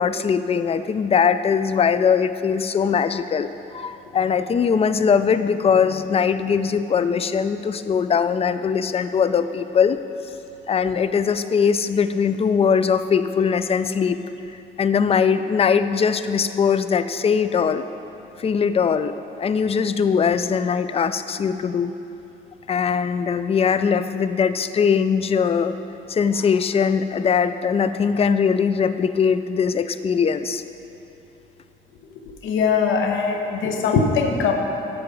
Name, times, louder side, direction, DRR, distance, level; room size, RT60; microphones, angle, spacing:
voice 1, 0.0-10.0 10.7-14.2 14.8-17.8 18.4-21.9 22.7-25.8 26.1-30.6, left 6 dB, 30° left, 12 dB, 0.4 m, -21 dB
voice 2, 32.3-34.5, left 5 dB, 80° left, 3 dB, 0.9 m, -21 dB
8.8 x 5.8 x 5.2 m, 3.0 s
cardioid pair, 90°, 20 cm